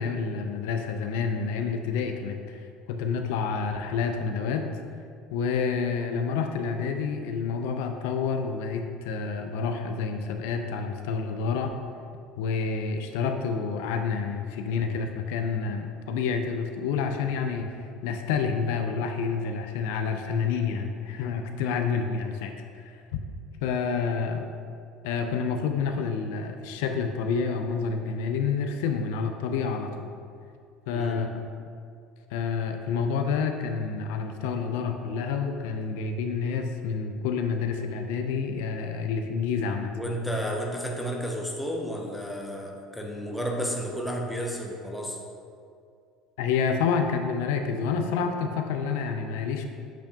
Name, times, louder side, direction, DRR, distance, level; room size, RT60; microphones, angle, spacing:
voice 1, 0.0-2.6 2.9-4.7 5.3-11.8 12.4-23.2 23.6-24.5 25.0-30.1 30.9-31.3 32.3-39.9 46.4-49.6, left 5 dB, 90° left, 5 dB, 0.5 m, -28 dB
voice 2, 30.9-31.2 39.9-45.2, equal, 5° left, -1 dB, 0.6 m, -32 dB
8.0 x 4.4 x 2.8 m, 2.3 s
cardioid pair, 160°, 0 cm